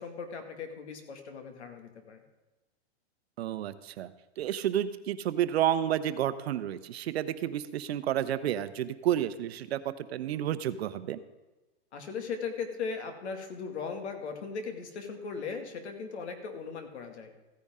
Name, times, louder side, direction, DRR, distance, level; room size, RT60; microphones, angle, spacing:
voice 1, 0.0-2.2 11.9-17.3, left 5 dB, 80° left, 5 dB, 2.2 m, -38 dB
voice 2, 3.4-4.1 4.4-9.8 10.1-11.2, right 11 dB, 70° right, 13 dB, 0.8 m, -30 dB
15.0 x 9.7 x 3.7 m, 1.1 s
hypercardioid pair, 150°, 33 cm